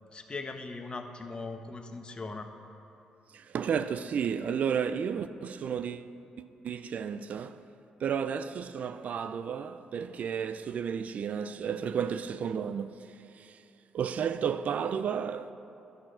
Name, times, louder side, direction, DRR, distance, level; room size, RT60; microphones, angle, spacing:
voice 1, 0.1-2.5, left 3 dB, 35° left, 1.1 m, -39 dB
voice 2, 3.3-6.1 6.4-7.6 8.0-13.1 13.4-13.6 13.9-15.5, right 7 dB, 60° right, 0.4 m, -32 dB
11.0 x 6.8 x 5.7 m
supercardioid pair, 55°, 3 cm